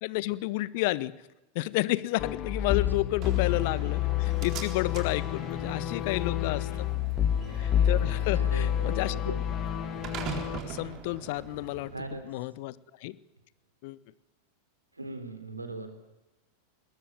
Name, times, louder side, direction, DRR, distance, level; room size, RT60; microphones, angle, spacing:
voice 1, 0.0-1.1 1.5-6.9 7.5-9.3 10.6-11.9 12.3-12.7 13.0-13.2 13.8-14.0, left 19 dB, 50° left, 20 dB, 0.8 m, -31 dB
sound 1, 2.2-10.6, left 11 dB, 30° left, 1.4 m, -29 dB
Slam, 3.2-12.2, right 8 dB, 35° right, 3.8 m, -43 dB
voice 2, 8.3-9.4 11.9-12.3 14.9-15.9, right 2 dB, 85° right, 8 dB, 3.5 m, -39 dB
21.0 x 20.5 x 9.1 m, 1.0 s
figure-of-eight pair, 90°, 0 cm